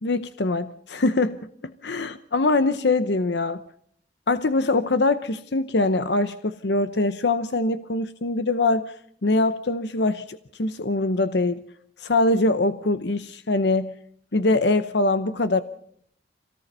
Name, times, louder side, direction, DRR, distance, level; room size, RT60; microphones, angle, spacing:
voice 1, 0.0-3.6 4.3-8.9 9.2-11.6 12.0-13.9 14.3-15.6, left 2 dB, 70° left, 0.8 m, -23 dB
26.5 x 18.0 x 5.4 m
head